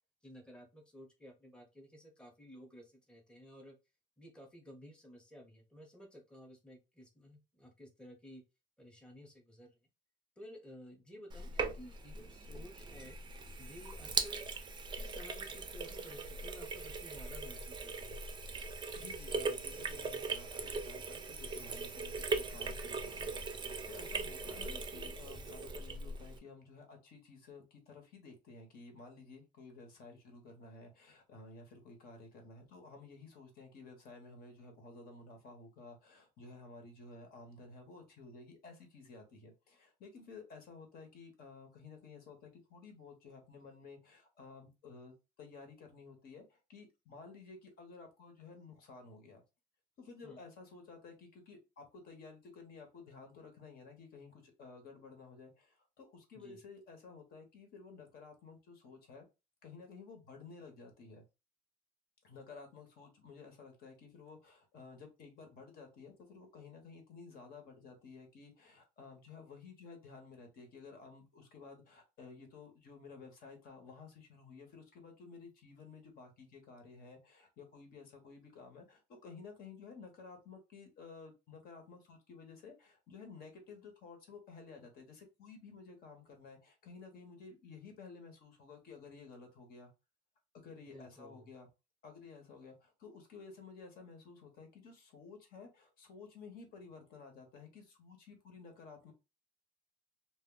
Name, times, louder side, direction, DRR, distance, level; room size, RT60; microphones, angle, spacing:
voice 1, 0.2-3.8 4.2-8.4 8.8-9.8 10.4-13.2 13.6-14.5 14.9-18.2 50.2-50.4 56.3-56.6 90.9-91.5, equal, 5° left, 1 dB, 0.7 m, -54 dB
Sink (filling or washing), 11.3-26.4, right 4 dB, 25° right, 0.4 m, -40 dB
voice 2, 19.0-49.4 50.0-59.3 59.6-61.2 62.2-89.9 90.5-91.7 92.0-99.1, left 4 dB, 65° left, 4 dB, 0.9 m, -53 dB
2.2 x 2.0 x 3.6 m, 0.27 s
cardioid pair, 110°, 17 cm